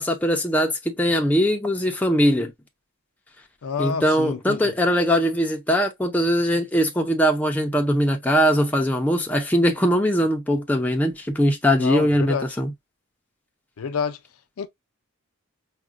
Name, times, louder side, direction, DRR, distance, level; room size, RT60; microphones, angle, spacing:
voice 1, 0.0-2.5 3.8-12.7, equal, 5° left, 0.5 m, -21 dB
voice 2, 3.6-4.7 11.8-12.5 13.8-14.2 14.6-14.7, left 6 dB, 70° left, 0.4 m, -28 dB
4.8 x 2.1 x 2.4 m
head